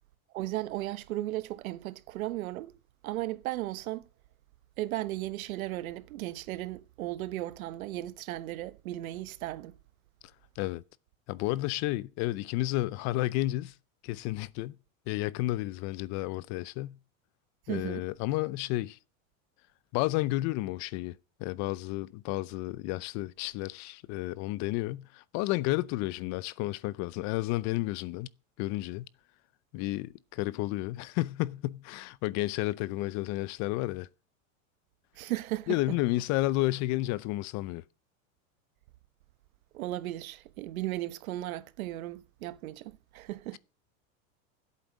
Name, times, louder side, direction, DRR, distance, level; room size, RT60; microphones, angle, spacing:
voice 1, 0.3-2.7 3.0-4.1 4.8-9.8 17.7-18.1 35.1-36.0 39.7-43.6, right 16 dB, 85° right, 1.2 m, -36 dB
voice 2, 11.3-13.7 14.0-14.8 15.1-17.0 17.7-19.0 19.9-21.1 21.4-28.3 28.6-29.1 29.7-34.1 35.7-37.8, left 18 dB, 45° left, 0.5 m, -31 dB
11.0 x 8.3 x 6.2 m
supercardioid pair, 140°, 41 cm